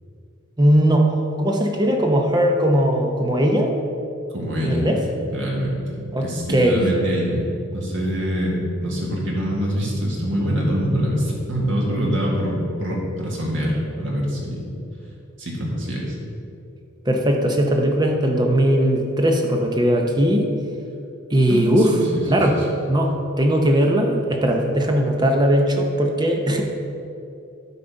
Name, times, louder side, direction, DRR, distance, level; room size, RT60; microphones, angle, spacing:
voice 1, 0.6-3.7 4.6-5.0 6.1-6.8 17.1-20.5 21.3-21.9 22.3-22.6 22.9-26.6, right 1 dB, 20° right, 2 dB, 0.8 m, -19 dB
voice 2, 4.3-4.9 5.2-5.9 6.2-7.4 7.7-14.7 15.4-16.2 21.5-22.6, equal, 60° right, -3 dB, 1.9 m, -24 dB
12.0 x 4.2 x 5.3 m, 2.6 s
head